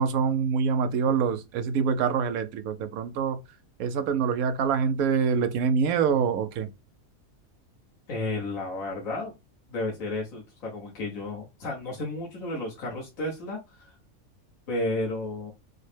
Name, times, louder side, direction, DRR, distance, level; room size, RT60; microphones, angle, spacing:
voice 1, 0.0-3.4 3.8-6.7, right 6 dB, 90° right, 1.1 m, -25 dB
voice 2, 8.1-9.3 9.7-13.9 14.7-15.5, left 2 dB, 70° left, 1.6 m, -32 dB
6.2 x 2.1 x 3.3 m
omnidirectional pair, 1.5 m